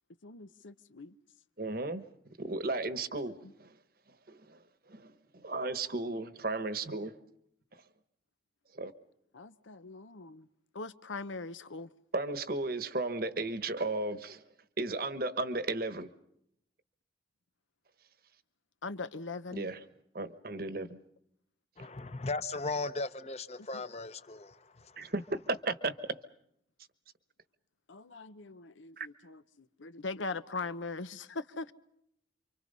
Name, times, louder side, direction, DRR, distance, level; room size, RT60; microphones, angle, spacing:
voice 1, 0.2-1.1 9.3-10.5 10.7-11.9 18.8-19.7 23.6-23.8 27.9-31.7, left 3 dB, 90° left, 1.0 m, -41 dB
voice 2, 1.6-2.1 2.4-3.7 4.3-4.6 4.9-7.1 8.7-8.9 12.1-14.4 14.8-16.1 19.5-19.8 20.1-21.0 25.0-25.9 29.0-29.1, right 2 dB, 50° right, 1.2 m, -34 dB
voice 3, 21.8-25.1, left 3 dB, 35° left, 0.9 m, -37 dB
29.0 x 25.0 x 5.5 m
head